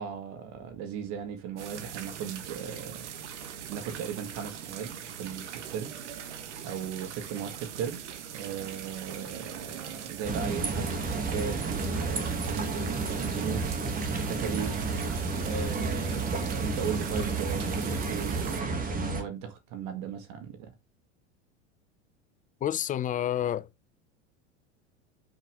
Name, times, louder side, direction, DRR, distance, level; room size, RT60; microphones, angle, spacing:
voice 1, 0.0-3.1 3.7-5.9 6.6-8.0 8.3-13.7 14.3-14.9 15.4-20.7, right 8 dB, 55° right, 1.8 m, -37 dB
sound 1, 1.6-18.6, right 8 dB, 80° right, 1.5 m, -41 dB
sound 2, 10.2-19.2, right 3 dB, 25° right, 2.3 m, -31 dB
voice 2, 22.6-23.7, left 11 dB, 25° left, 0.5 m, -29 dB
7.5 x 6.5 x 3.6 m
hypercardioid pair, 95°, 35 cm